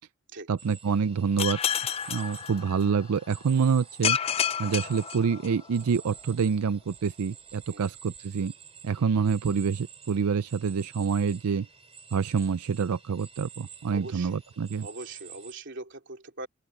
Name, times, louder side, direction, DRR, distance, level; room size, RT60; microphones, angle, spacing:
voice 1, 0.5-1.6 2.1-4.2 4.6-8.5 8.8-11.7 12.1-14.9, right 6 dB, 85° right, 0.5 m, -27 dB
sound 1, 0.6-15.5, right 7 dB, 25° right, 2.9 m, -50 dB
sound 2, 1.4-3.1 4.0-5.8, left 9 dB, 25° left, 0.4 m, -30 dB
voice 2, 13.8-14.3 14.8-16.5, right 2 dB, 55° right, 3.2 m, -41 dB
open air
head